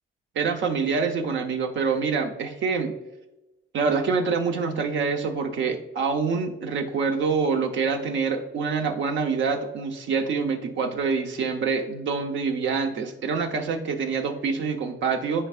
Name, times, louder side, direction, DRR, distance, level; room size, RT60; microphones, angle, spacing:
voice 1, 0.3-3.0 3.7-15.5, right 5 dB, 70° right, 5 dB, 0.9 m, -26 dB
9.8 x 4.6 x 2.5 m, 1.0 s
cardioid pair, 90°, 20 cm